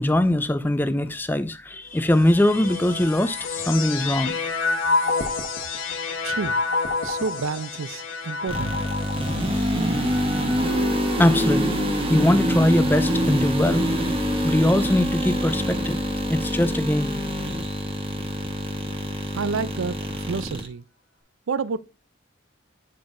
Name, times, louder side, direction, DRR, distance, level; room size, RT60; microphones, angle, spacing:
voice 1, 0.0-4.3 11.2-11.7 12.1-13.8 14.4-16.0 16.3-17.1, left 1 dB, 10° left, 0.4 m, -21 dB
sound 1, 2.0-13.5 14.2-15.0, left 4 dB, 85° left, 1.2 m, -30 dB
voice 2, 6.2-6.6 7.0-8.8 19.3-20.8 21.5-21.8, right 5 dB, 80° right, 0.5 m, -29 dB
sound 2, 8.5-20.7, equal, 30° right, 1.2 m, -25 dB
8.7 x 5.3 x 2.6 m
head